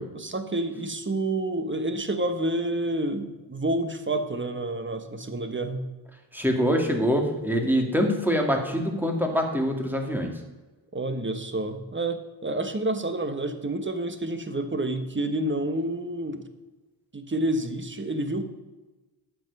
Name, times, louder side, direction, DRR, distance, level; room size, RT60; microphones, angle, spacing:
voice 1, 0.1-5.8 10.9-16.4 17.1-18.4, right 1 dB, 25° right, 8 dB, 1.4 m, -29 dB
voice 2, 6.3-10.4, equal, 5° right, 3 dB, 2.4 m, -24 dB
12.0 x 7.6 x 5.5 m, 1.2 s
cardioid pair, 80°, 44 cm